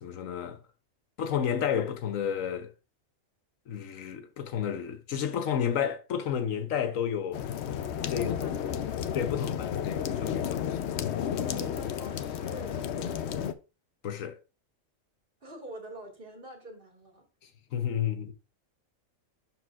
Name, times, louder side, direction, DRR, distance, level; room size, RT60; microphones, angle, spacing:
voice 1, 0.0-0.6 1.2-2.7 3.7-7.4 8.1-8.3 9.1-10.6 11.0-11.2 14.0-14.4 17.7-18.3, left 8 dB, 80° left, 1.2 m, -31 dB
sound 1, 7.3-13.5, left 9 dB, 65° left, 0.8 m, -32 dB
voice 2, 8.1-8.9 11.4-13.6 15.4-17.2, right 1 dB, 40° right, 2.1 m, -46 dB
12.0 x 4.6 x 2.4 m
omnidirectional pair, 1.4 m